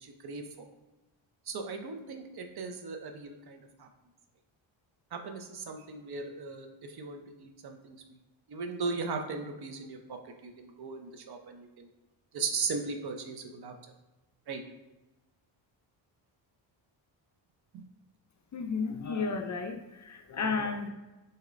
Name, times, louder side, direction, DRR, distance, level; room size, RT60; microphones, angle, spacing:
voice 1, 0.0-0.7 1.5-3.9 5.1-8.2 8.5-11.9 12.3-13.8 14.5-14.6 17.7-17.8, right 4 dB, 55° right, 5 dB, 0.6 m, -38 dB
voice 2, 18.5-20.9, left 4 dB, 40° left, 4 dB, 0.4 m, -33 dB
6.2 x 2.9 x 2.5 m, 1.1 s
cardioid pair, 120°, 47 cm